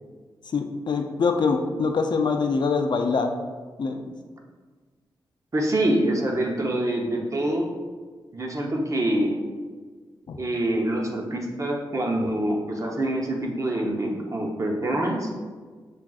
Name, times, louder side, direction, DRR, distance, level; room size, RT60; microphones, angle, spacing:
voice 1, 0.5-3.3 3.8-4.1 10.3-10.4, left 4 dB, 60° left, 5 dB, 0.4 m, -24 dB
voice 2, 5.5-7.7 8.3-9.4 10.4-15.3, right 1 dB, 40° right, 0 dB, 0.8 m, -25 dB
7.1 x 2.5 x 2.4 m, 1.5 s
cardioid pair, 60°, 9 cm